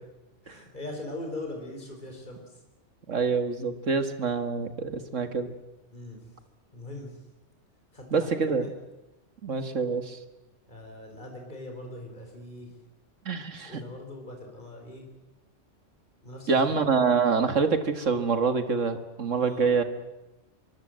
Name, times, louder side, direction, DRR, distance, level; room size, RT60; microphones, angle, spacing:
voice 1, 0.4-2.6 5.9-6.3 6.7-7.2 7.9-8.7 10.7-12.8 13.6-15.1 16.2-16.8 19.3-19.8, left 1 dB, 40° left, 2 dB, 4.5 m, -41 dB
voice 2, 3.1-5.5 8.1-8.7 9.4-10.2 13.3-13.8 16.5-19.8, right 5 dB, 80° right, 9 dB, 2.2 m, -26 dB
25.0 x 23.0 x 7.7 m, 0.97 s
omnidirectional pair, 1.3 m